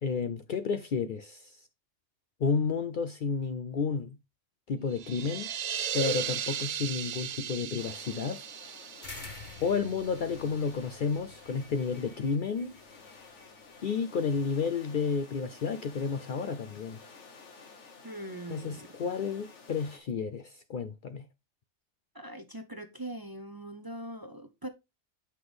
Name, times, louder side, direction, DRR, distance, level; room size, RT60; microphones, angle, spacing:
voice 1, 0.0-1.6 2.4-4.2 4.7-5.5 5.9-8.4 9.6-12.7 13.8-17.0 18.5-21.2, left 5 dB, 60° left, 0.6 m, -31 dB
sound 1, 4.9-10.5, right 8 dB, 65° right, 0.3 m, -36 dB
sound 2, 7.8-20.0, left 4 dB, 75° left, 1.6 m, -52 dB
sound 3, 9.0-13.9, left 3 dB, 40° left, 1.5 m, -49 dB
voice 2, 18.0-19.1 22.1-24.7, right 1 dB, 25° right, 0.6 m, -42 dB
7.8 x 5.7 x 3.4 m
omnidirectional pair, 1.2 m